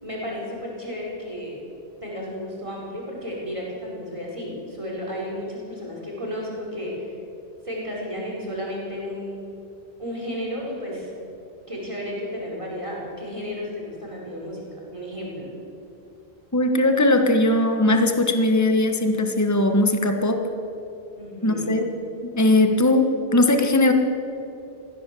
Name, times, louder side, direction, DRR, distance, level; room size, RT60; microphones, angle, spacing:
voice 1, 0.0-1.5 2.0-7.1 7.6-9.5 10.0-11.1 11.7-14.7 14.9-15.5 21.2-21.7, equal, 30° right, -3 dB, 4.9 m, -33 dB
voice 2, 16.5-20.4 21.4-21.8 22.3-23.9, left 1 dB, 15° left, 5 dB, 1.4 m, -19 dB
22.5 x 16.0 x 7.7 m, 2.8 s
omnidirectional pair, 1.1 m